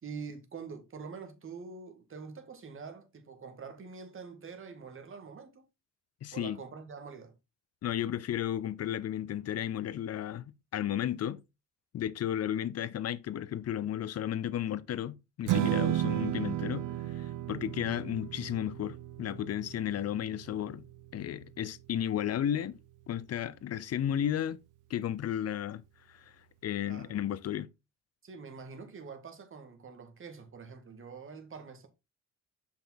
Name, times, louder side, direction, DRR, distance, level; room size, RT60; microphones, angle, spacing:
voice 1, 0.0-5.7 6.3-7.4 16.8-17.1 26.8-27.2 28.2-31.9, right 5 dB, 45° right, 2.0 m, -45 dB
voice 2, 6.2-6.6 7.8-11.4 11.9-20.9 21.1-22.8 23.1-24.6 24.9-25.8 26.1-26.3 26.6-27.7, left 10 dB, 55° left, 0.7 m, -33 dB
Strum, 15.5-21.8, right 14 dB, 85° right, 0.6 m, -34 dB
6.8 x 5.6 x 4.0 m
cardioid pair, 90°, 30 cm